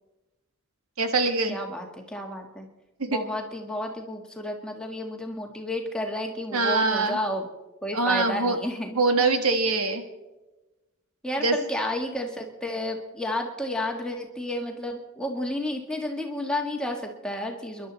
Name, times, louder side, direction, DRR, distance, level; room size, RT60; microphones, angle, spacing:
voice 1, 1.0-1.6 3.0-3.2 6.5-7.2 7.9-8.6 8.9-10.0 11.4-11.6, right 3 dB, 85° right, 6 dB, 1.5 m, -23 dB
voice 2, 1.5-2.7 3.1-7.5 7.8-9.5 11.2-17.9, left 1 dB, 5° left, 1 dB, 1.6 m, -31 dB
29.0 x 11.5 x 4.1 m, 1.1 s
head